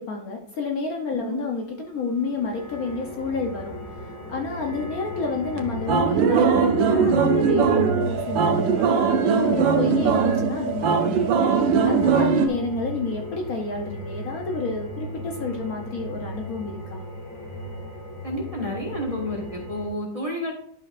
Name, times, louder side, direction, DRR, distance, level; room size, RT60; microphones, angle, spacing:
voice 1, 0.0-3.7 4.0-11.4 11.8-17.0, left 4 dB, 60° left, 2 dB, 1.2 m, -30 dB
sound 1, 2.0-19.9, right 1 dB, 85° left, 3.3 m, -35 dB
sound 2, 5.6-5.7 5.9-12.5, right 6 dB, 85° right, 1.5 m, -20 dB
voice 2, 18.2-20.5, left 1 dB, 20° right, -1 dB, 1.3 m, -30 dB
11.0 x 5.6 x 2.5 m, 0.66 s
omnidirectional pair, 2.0 m